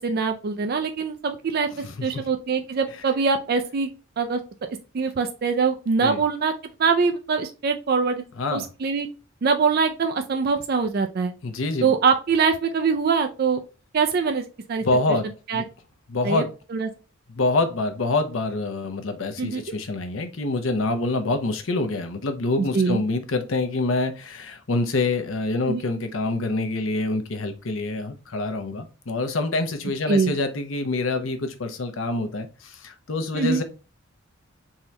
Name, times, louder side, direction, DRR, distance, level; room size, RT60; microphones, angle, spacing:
voice 1, 0.0-1.7 2.0-3.9 4.2-4.4 4.9-6.5 6.8-8.3 8.5-9.1 9.4-11.3 11.8-13.6 13.9-14.8 15.5-15.6 16.2-16.4 16.7-16.9 19.4-19.6 22.6-23.0 25.7-25.8 30.1-30.3 33.3-33.6, right 5 dB, 45° right, 6 dB, 0.4 m, -23 dB
voice 2, 11.4-11.9 14.8-15.3 15.5-15.7 16.1-16.5 17.3-33.6, left 2 dB, 70° left, 7 dB, 0.8 m, -26 dB
3.7 x 2.9 x 3.2 m, 0.34 s
head